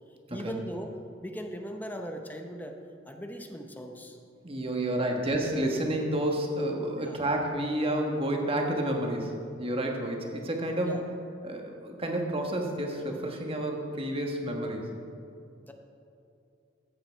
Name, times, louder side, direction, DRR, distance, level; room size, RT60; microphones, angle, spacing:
voice 1, 0.3-2.8 3.1-4.2 5.1-5.2 7.0-7.2 10.8-11.0 15.6-15.7, equal, 10° left, 4 dB, 0.7 m, -39 dB
voice 2, 4.4-11.0 11.4-14.9, right 1 dB, 30° right, 2 dB, 1.3 m, -30 dB
14.0 x 8.6 x 4.5 m, 2.6 s
head